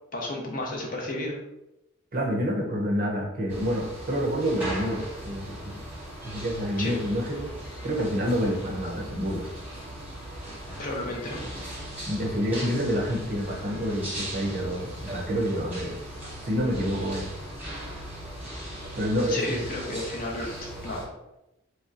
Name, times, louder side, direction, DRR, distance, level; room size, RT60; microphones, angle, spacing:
voice 1, 0.1-1.4 6.8-6.9 10.8-11.5 19.3-21.1, left 2 dB, 40° left, 0 dB, 0.6 m, -33 dB
voice 2, 2.1-5.7 6.2-7.5 7.8-9.4 12.1-16.0 16.4-17.3 19.0-19.6, equal, 40° right, -1 dB, 0.6 m, -28 dB
sound 1, 3.5-21.0, right 1 dB, 5° right, 1.0 m, -38 dB
sound 2, 11.4-21.0, left 4 dB, 75° left, 0.7 m, -54 dB
3.1 x 2.8 x 2.4 m, 0.89 s
head